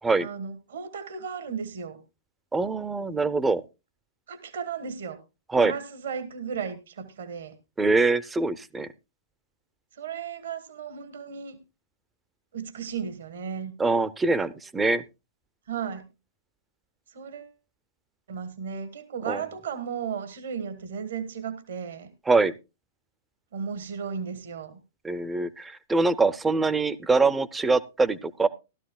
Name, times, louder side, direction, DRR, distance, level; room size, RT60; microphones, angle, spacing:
voice 1, 0.2-2.0 4.3-5.2 5.5-7.5 9.9-11.6 12.5-13.7 15.7-16.1 17.1-17.5 18.3-22.1 23.5-24.8, right 7 dB, 65° right, 11 dB, 1.4 m, -35 dB
voice 2, 2.5-3.6 5.5-5.7 7.8-8.9 13.8-15.0 19.3-19.4 22.3-22.5 25.0-28.5, right 3 dB, 10° right, 15 dB, 0.7 m, -23 dB
16.0 x 12.5 x 2.3 m, 0.27 s
figure-of-eight pair, 105°, 0 cm